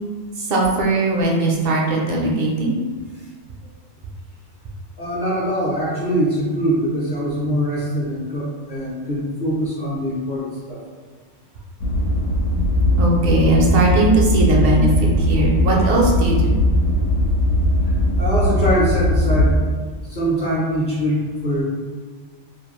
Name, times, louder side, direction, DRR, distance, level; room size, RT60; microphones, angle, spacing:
voice 1, 0.4-2.8 12.9-16.5, right 2 dB, 60° right, -2 dB, 0.6 m, -19 dB
voice 2, 5.0-10.8 17.8-19.5 20.0-21.6, equal, 45° left, -7 dB, 0.7 m, -23 dB
sound 1, 11.8-19.5, left 1 dB, 80° left, 1.0 m, -19 dB
2.5 x 2.3 x 3.0 m, 1.5 s
omnidirectional pair, 1.4 m